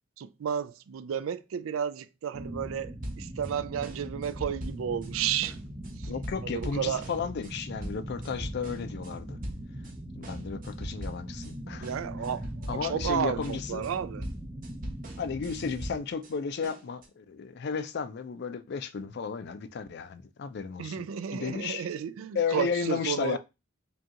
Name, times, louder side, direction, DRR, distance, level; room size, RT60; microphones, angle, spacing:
voice 1, 0.2-5.6 6.0-6.1 6.4-7.0 11.6-14.3 20.8-23.4, right 8 dB, 85° right, 0.4 m, -32 dB
sound 1, 2.3-16.0, right 1 dB, 15° right, 0.5 m, -41 dB
sound 2, 3.0-3.5 3.8-5.1 5.4-9.1 9.4-9.9 10.2-11.5 11.8-16.3 16.6-17.1, equal, 45° right, 0.9 m, -41 dB
voice 2, 6.1-9.4 10.1-11.9 12.7-13.9 15.2-21.1 21.3-21.9 22.3-23.4, left 6 dB, 55° left, 0.4 m, -33 dB
5.1 x 2.3 x 2.8 m
head